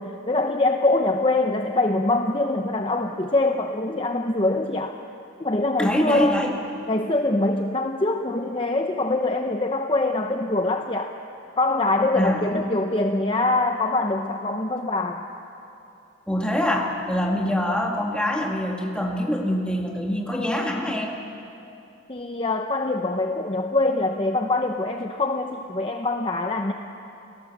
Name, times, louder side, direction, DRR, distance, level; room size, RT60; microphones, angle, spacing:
voice 1, 0.0-5.0 5.4-6.4 6.9-11.1 11.6-15.2 22.1-26.7, left 2 dB, 25° left, 4 dB, 0.7 m, -24 dB
voice 2, 5.8-6.6 12.2-12.5 16.3-21.2, equal, 5° left, 0 dB, 2.1 m, -24 dB
29.0 x 18.0 x 7.4 m, 2.8 s
head